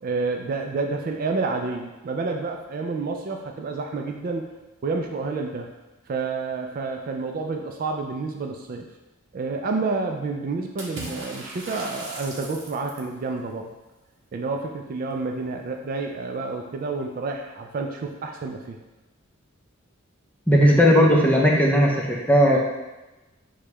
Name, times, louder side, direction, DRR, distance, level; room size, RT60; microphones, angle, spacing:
voice 1, 0.0-4.5 4.8-5.7 6.1-8.9 9.3-13.7 14.3-18.8, right 3 dB, 45° right, 3 dB, 0.3 m, -29 dB
Water / Splash splatter, 10.8-13.2, right 2 dB, 65° right, 0.9 m, -37 dB
voice 2, 20.5-22.6, equal, 5° left, -3 dB, 0.6 m, -17 dB
6.6 x 2.2 x 3.0 m, 1.1 s
head